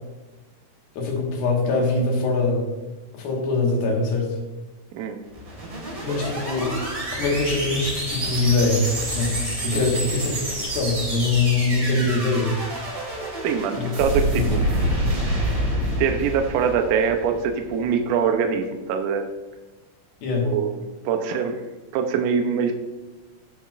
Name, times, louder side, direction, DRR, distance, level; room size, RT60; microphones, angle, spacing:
voice 1, 1.0-2.6 3.1-4.3 6.0-6.8 7.1-8.8 9.1-9.3 9.6-12.5 13.7-13.9 14.4-14.5 20.2-20.5, left 3 dB, 85° left, -1 dB, 3.4 m, -23 dB
sound 1, 5.2-17.6, equal, 35° right, 3.1 m, -27 dB
voice 2, 13.4-14.6 16.0-19.3 20.4-20.7 21.1-21.6 21.9-22.7, right 7 dB, 80° right, 5 dB, 2.0 m, -23 dB
16.5 x 6.1 x 2.5 m, 1.2 s
omnidirectional pair, 4.1 m